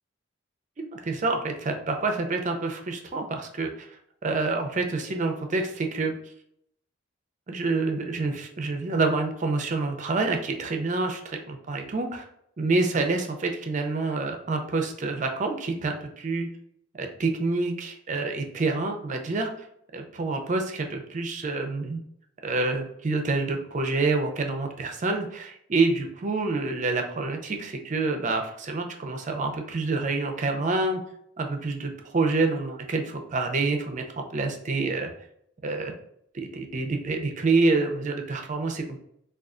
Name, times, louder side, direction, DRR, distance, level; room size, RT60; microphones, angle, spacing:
voice 1, 0.8-3.9 4.2-6.1 7.5-12.3 12.6-16.5 16.9-19.5 19.9-22.0 22.4-31.0 31.4-35.1 35.6-35.9 36.3-39.0, right 3 dB, 40° right, 4 dB, 0.5 m, -27 dB
4.5 x 2.3 x 2.4 m, 0.73 s
head